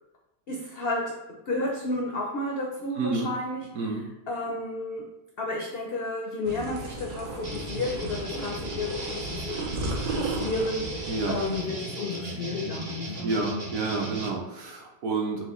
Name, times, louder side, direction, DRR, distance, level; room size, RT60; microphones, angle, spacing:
voice 1, 0.5-3.7 4.3-5.0 5.4-11.0 11.3-13.3, left 2 dB, 75° left, -2 dB, 0.5 m, -32 dB
voice 2, 3.0-3.3 3.7-4.0 11.1-11.3 13.2-15.4, right 3 dB, 65° right, 0 dB, 1.0 m, -29 dB
sound 1, 6.5-11.6, right 2 dB, 80° right, 1.2 m, -34 dB
sound 2, 7.4-14.3, right 1 dB, 45° right, 0.5 m, -37 dB
6.1 x 2.3 x 3.0 m, 0.95 s
omnidirectional pair, 1.8 m